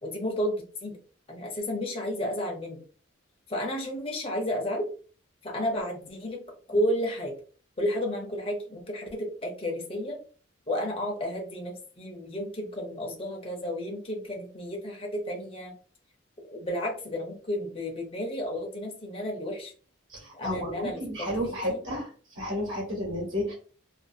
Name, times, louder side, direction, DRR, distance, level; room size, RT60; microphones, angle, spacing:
voice 1, 0.0-0.9 1.3-2.8 3.5-4.9 5.4-6.4 6.7-7.3 7.8-10.2 10.7-15.8 16.5-19.7 20.3-21.8, equal, 25° left, 0 dB, 0.6 m, -32 dB
voice 2, 20.1-22.1 22.3-23.5, equal, 65° right, -3 dB, 1.2 m, -31 dB
2.5 x 2.4 x 2.6 m, 0.41 s
head